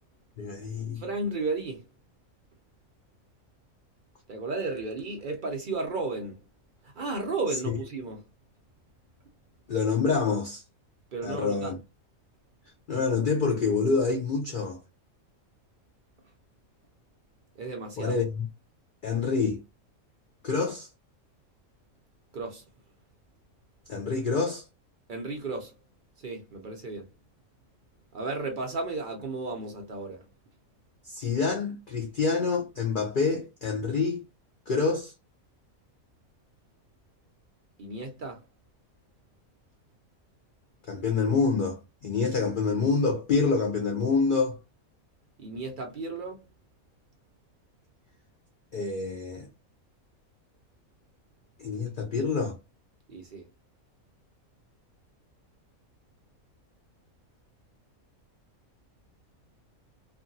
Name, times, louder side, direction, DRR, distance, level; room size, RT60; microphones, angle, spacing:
voice 1, 0.4-1.0 9.7-10.6 11.2-11.8 12.9-14.8 18.0-18.5 19.0-19.6 20.4-20.9 23.9-24.7 31.0-34.2 34.7-35.1 40.9-44.6 48.7-49.5 51.6-52.6, left 4 dB, 60° left, 0.5 m, -27 dB
voice 2, 1.0-1.8 4.3-6.4 7.0-8.2 11.1-11.7 17.6-18.2 22.3-22.6 25.1-25.7 26.2-27.1 28.1-30.2 37.8-38.4 45.4-46.4 53.1-53.4, right 3 dB, 55° right, 0.5 m, -33 dB
2.7 x 2.5 x 2.6 m
omnidirectional pair, 1.5 m